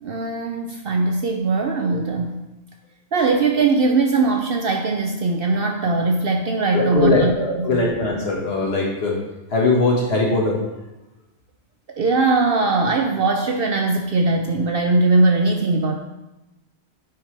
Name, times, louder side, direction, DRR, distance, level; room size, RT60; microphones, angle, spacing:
voice 1, 0.0-2.3 3.1-7.3 7.6-7.9 12.0-16.0, right 3 dB, 55° right, 4 dB, 0.7 m, -20 dB
voice 2, 6.7-9.2 9.5-10.6, left 2 dB, 50° left, -3 dB, 2.0 m, -20 dB
9.5 x 6.1 x 3.4 m, 0.97 s
omnidirectional pair, 1.3 m